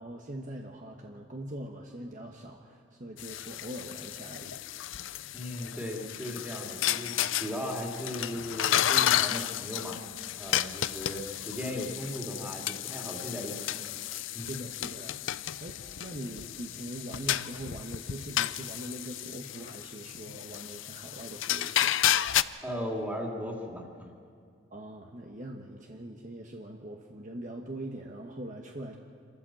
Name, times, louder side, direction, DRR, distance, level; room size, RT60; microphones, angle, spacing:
voice 1, 0.0-4.6 14.4-15.1 15.6-22.0 24.7-29.0, right 1 dB, 45° right, 1 dB, 1.2 m, -42 dB
sound 1, 3.2-22.4, left 11 dB, 80° left, 0.5 m, -32 dB
voice 2, 5.3-10.0 10.4-13.8 14.3-14.6 22.6-24.1, equal, 10° right, 0 dB, 2.7 m, -37 dB
27.5 x 13.5 x 7.6 m, 2.2 s
head